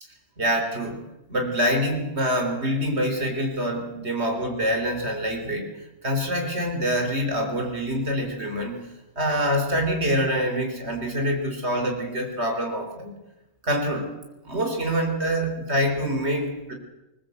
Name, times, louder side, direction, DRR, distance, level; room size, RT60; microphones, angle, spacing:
voice 1, 0.4-1.0 1.3-5.7 6.0-8.8 9.2-13.1 13.6-14.1 14.4-16.7, equal, 60° right, 3 dB, 4.1 m, -25 dB
20.5 x 19.5 x 8.1 m, 0.99 s
omnidirectional pair, 1.3 m